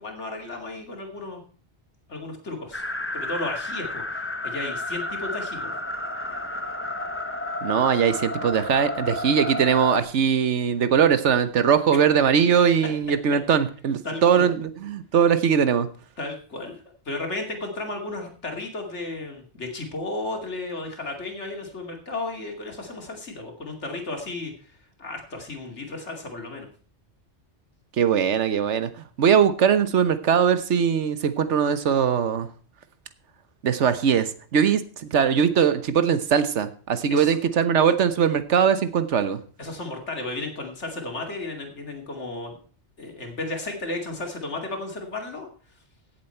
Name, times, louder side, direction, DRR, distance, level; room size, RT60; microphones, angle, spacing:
voice 1, 0.0-1.4 2.1-2.8 3.1-5.7 14.0-14.5 16.2-26.7 37.1-37.4 39.6-42.6 43.0-45.5, left 2 dB, 90° left, 2 dB, 2.8 m, -34 dB
sound 1, 2.7-10.0, left 1 dB, 15° left, 0.7 m, -31 dB
voice 2, 7.6-15.9 28.0-28.9 29.2-32.5 33.6-39.4, right 7 dB, 85° right, 12 dB, 1.3 m, -21 dB
16.5 x 7.5 x 4.4 m, 0.41 s
omnidirectional pair, 1.2 m